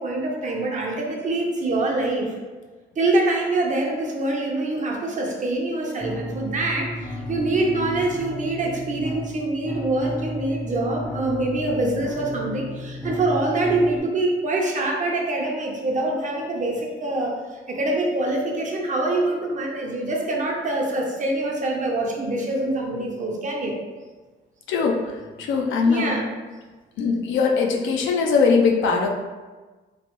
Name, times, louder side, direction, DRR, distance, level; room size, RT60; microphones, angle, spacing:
voice 1, 0.0-2.4 3.0-23.8 25.9-26.3, right 2 dB, 40° right, 0 dB, 0.6 m, -25 dB
sound 1, 6.0-14.0, left 1 dB, 10° left, 0.4 m, -33 dB
voice 2, 24.7-26.2 27.0-29.1, left 5 dB, 80° left, 1 dB, 0.5 m, -21 dB
3.1 x 2.0 x 3.0 m, 1.3 s
cardioid pair, 90°, 20 cm